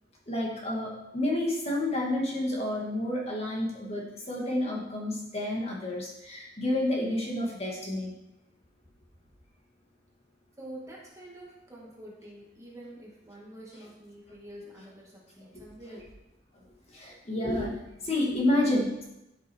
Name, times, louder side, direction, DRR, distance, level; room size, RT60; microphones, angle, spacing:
voice 1, 0.3-8.1 16.5-16.6 16.9-19.0, left 1 dB, 35° left, -2 dB, 2.3 m, -30 dB
voice 2, 10.6-16.1, right 1 dB, 15° right, -4 dB, 2.5 m, -47 dB
13.0 x 6.8 x 4.8 m, 0.91 s
head